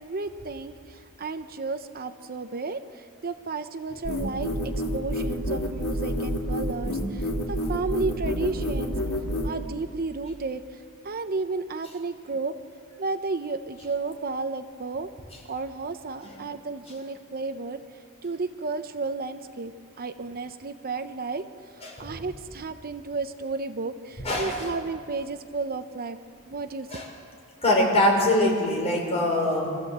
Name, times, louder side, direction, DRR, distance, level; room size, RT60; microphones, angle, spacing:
voice 1, 0.0-2.8 3.2-4.5 4.9-9.0 9.4-10.6 11.0-12.5 13.0-15.1 15.5-17.8 18.2-19.7 20.0-21.4 22.0-26.2 26.5-26.9, right 3 dB, 45° right, 9 dB, 0.7 m, -32 dB
sound 1, 4.0-9.5, equal, 80° left, 2.7 m, -28 dB
voice 2, 21.8-22.2 24.2-24.7 26.9-27.1 27.6-29.8, left 1 dB, 30° left, -1 dB, 5.2 m, -23 dB
26.0 x 14.5 x 7.9 m, 2.2 s
head